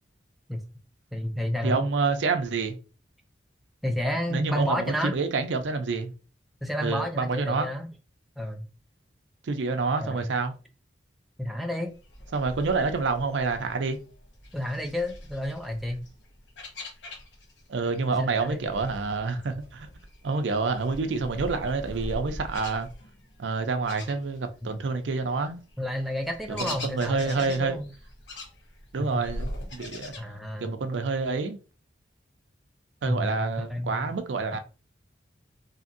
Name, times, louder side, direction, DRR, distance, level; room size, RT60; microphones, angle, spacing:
voice 1, 1.1-1.8 3.8-5.2 6.6-7.9 8.4-8.7 10.0-10.3 11.4-11.9 14.5-16.1 18.2-18.6 25.8-27.9 29.0-29.2 30.2-30.8 33.0-34.1, left 1 dB, ahead, 0.3 m, -31 dB
voice 2, 1.6-2.8 4.3-6.1 6.8-7.7 9.4-10.5 12.3-14.0 17.7-19.9 20.2-22.9 23.4-25.6 26.5-27.8 28.9-30.1 30.6-31.6 33.0-34.6, right 4 dB, 90° right, 0.5 m, -28 dB
sound 1, 11.9-17.7 17.9-24.7 25.1-30.2, left 1 dB, 80° left, 0.9 m, -42 dB
2.8 x 2.6 x 2.5 m
head